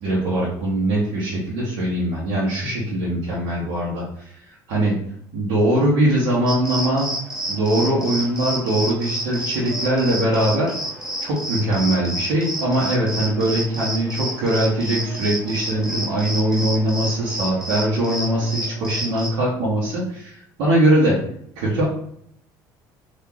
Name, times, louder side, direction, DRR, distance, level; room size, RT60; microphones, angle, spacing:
voice 1, 0.0-4.0 4.7-4.9 5.3-7.1 7.5-10.7 11.2-21.2 21.6-21.8, right 1 dB, 90° right, -7 dB, 1.3 m, -21 dB
sound 1, 6.5-19.3, right 1 dB, 10° right, 0.8 m, -30 dB
3.8 x 2.8 x 3.0 m, 0.69 s
cardioid pair, 150°, 8 cm